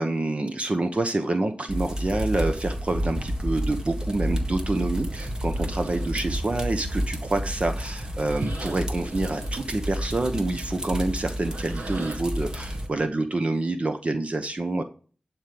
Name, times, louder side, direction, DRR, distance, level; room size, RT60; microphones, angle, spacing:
voice 1, 0.0-14.8, right 2 dB, 45° right, 7 dB, 1.0 m, -27 dB
sound 1, 1.7-12.9, equal, 25° right, 1.6 m, -30 dB
sound 2, 5.0-13.1, right 2 dB, 85° right, 1.8 m, -41 dB
11.0 x 4.5 x 6.9 m, 0.39 s
wide cardioid pair, 75°, 3 cm